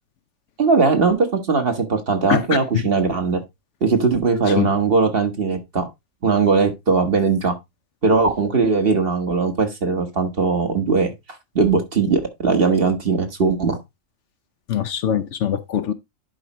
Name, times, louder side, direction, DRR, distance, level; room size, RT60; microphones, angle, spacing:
voice 1, 0.6-3.4 3.8-5.9 6.2-7.6 8.0-11.1 11.5-13.8, right 4 dB, 45° right, 1.4 m, -19 dB
voice 2, 14.7-15.9, left 9 dB, 65° left, 0.9 m, -22 dB
11.0 x 4.9 x 2.9 m
omnidirectional pair, 1.4 m